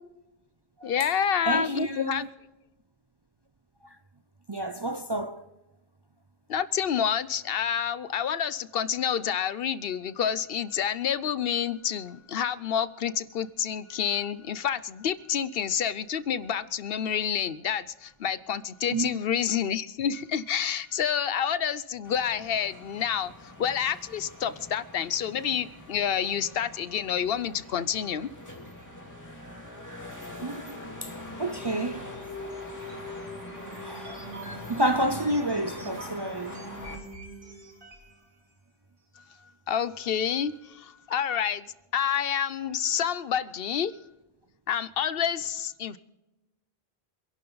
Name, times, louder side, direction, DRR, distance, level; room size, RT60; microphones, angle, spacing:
voice 1, 0.8-2.3 6.5-28.3 39.7-41.7 41.9-43.9 44.7-46.0, left 8 dB, 70° left, 0.9 m, -28 dB
voice 2, 1.5-2.3 4.5-5.4 18.9-19.1 30.4-31.1 31.4-32.0 33.8-34.2 34.7-36.6, right 1 dB, 30° right, 0.5 m, -29 dB
sound 1, 22.0-37.0, left 1 dB, 15° left, 2.7 m, -43 dB
sound 2, 31.0-38.2, equal, 55° right, 2.9 m, -43 dB
26.0 x 11.5 x 4.0 m
omnidirectional pair, 1.0 m